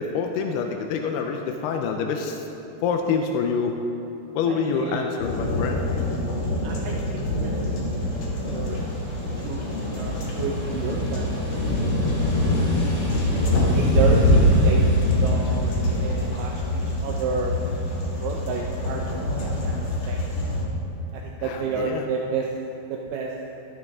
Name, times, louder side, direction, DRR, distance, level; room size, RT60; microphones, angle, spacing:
voice 1, 0.0-2.4 2.8-3.8 4.3-5.8 21.4-22.1, left 5 dB, 85° left, 3 dB, 2.6 m, -26 dB
voice 2, 4.5-5.1 6.6-7.7 8.5-8.9 9.4-9.6 10.0-12.1 13.4-17.5 18.2-20.3 21.1-22.5 22.9-23.3, right 5 dB, 80° right, 0 dB, 1.9 m, -31 dB
sound 1, 5.2-20.6, left 1 dB, 45° left, 2.0 m, -24 dB
sound 2, 7.5-19.2, equal, 5° right, 1.6 m, -37 dB
13.0 x 12.5 x 3.6 m, 2.8 s
omnidirectional pair, 4.6 m